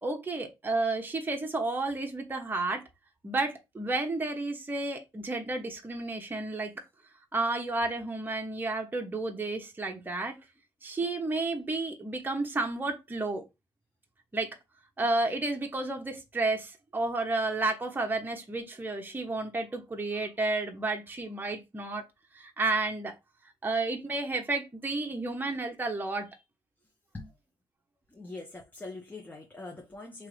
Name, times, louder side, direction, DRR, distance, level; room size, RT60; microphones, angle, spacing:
voice 1, 0.0-2.8 3.2-6.8 7.3-10.4 10.8-13.4 14.3-14.6 15.0-22.0 22.3-23.1 23.6-26.3, right 2 dB, 20° right, 1.1 m, -31 dB
voice 2, 28.1-30.3, left 2 dB, 15° left, 1.1 m, -43 dB
3.6 x 3.1 x 3.2 m
cardioid pair, 75°, 10 cm